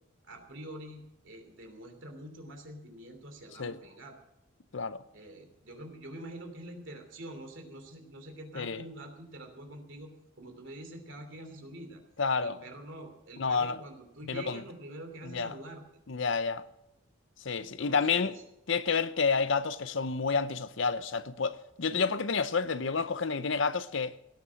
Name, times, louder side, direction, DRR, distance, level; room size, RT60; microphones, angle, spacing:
voice 1, 0.2-4.2 5.1-12.0 12.4-15.8 17.5-18.4, right 1 dB, 60° right, 2.9 m, -46 dB
voice 2, 12.2-12.6 13.4-13.8 14.3-14.6 15.2-15.5 16.1-16.6 17.4-18.3 18.7-24.1, left 5 dB, 60° left, 0.7 m, -29 dB
17.5 x 9.8 x 6.3 m
head